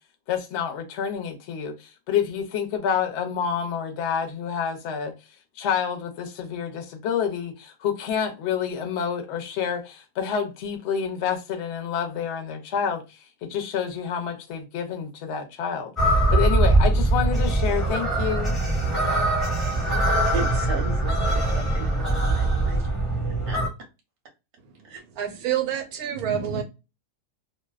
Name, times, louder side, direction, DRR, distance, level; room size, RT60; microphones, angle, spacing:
voice 1, 0.3-5.1 5.6-15.9 16.3-18.6, left 7 dB, 60° left, 0.7 m, -28 dB
sound 1, 16.0-23.7, right 2 dB, ahead, 0.5 m, -22 dB
voice 2, 20.1-22.9 23.3-23.6 24.8-25.0, right 3 dB, 50° right, 0.7 m, -36 dB
voice 3, 24.6-26.6, right 9 dB, 80° right, 1.1 m, -28 dB
2.6 x 2.1 x 2.3 m
omnidirectional pair, 1.6 m